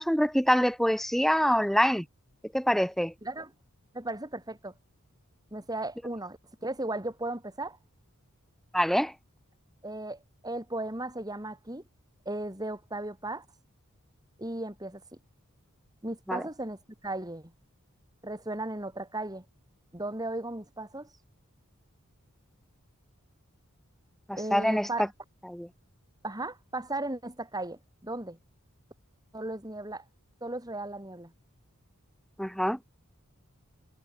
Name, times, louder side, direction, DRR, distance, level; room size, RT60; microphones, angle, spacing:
voice 1, 0.0-2.0 2.5-3.1 8.7-9.1 16.3-16.4 24.3-25.1 25.5-25.7 32.4-32.8, equal, ahead, 1.1 m, -25 dB
voice 2, 3.9-4.7 5.5-7.8 9.8-11.8 12.3-13.4 14.4-15.0 16.0-16.8 17.0-17.5 18.2-19.4 19.9-21.1 24.4-25.0 26.2-28.4 29.3-30.0 30.4-31.3, right 2 dB, 20° right, 5.9 m, -36 dB
head